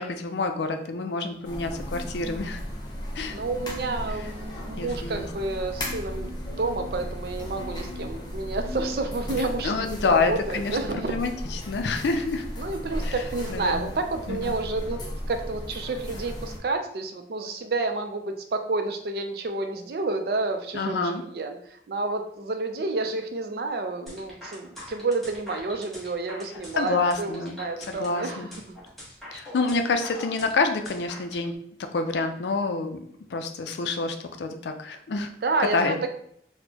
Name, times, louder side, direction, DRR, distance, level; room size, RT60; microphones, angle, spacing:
voice 1, 0.0-2.6 3.1-3.4 4.8-5.3 9.6-12.5 13.0-13.1 13.5-13.9 14.3-14.5 20.7-21.2 26.8-27.6 27.9-28.5 29.3-31.5 31.9-33.0 33.3-35.3 35.7-35.9, left 3 dB, 75° left, 6 dB, 0.4 m, -27 dB
sound 1, 1.4-16.6, equal, 25° left, 0.5 m, -35 dB
voice 2, 3.3-11.2 12.6-15.0 15.3-28.4 28.7-28.8 35.4-36.1, right 3 dB, 60° right, 6 dB, 0.4 m, -30 dB
sound 2, 24.1-31.4, left 1 dB, ahead, 1.1 m, -43 dB
4.3 x 2.1 x 2.7 m, 0.67 s
head